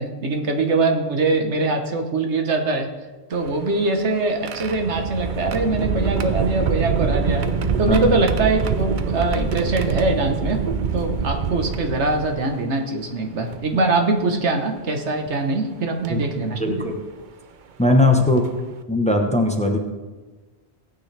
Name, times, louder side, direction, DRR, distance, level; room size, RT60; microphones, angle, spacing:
voice 1, 0.0-2.9 3.3-7.5 7.8-10.6 10.9-16.9, right 3 dB, 85° right, 4 dB, 1.5 m, -23 dB
sound 1, 3.3-12.6 13.5-13.6 15.1-15.3 16.0-16.2 17.8-17.9 18.4-18.6, right 5 dB, 50° right, 0.7 m, -25 dB
voice 2, 16.6-17.0 17.8-18.4 18.9-19.8, left 2 dB, 5° left, 3 dB, 0.9 m, -19 dB
17.0 x 9.2 x 3.4 m, 1.3 s
omnidirectional pair, 1.1 m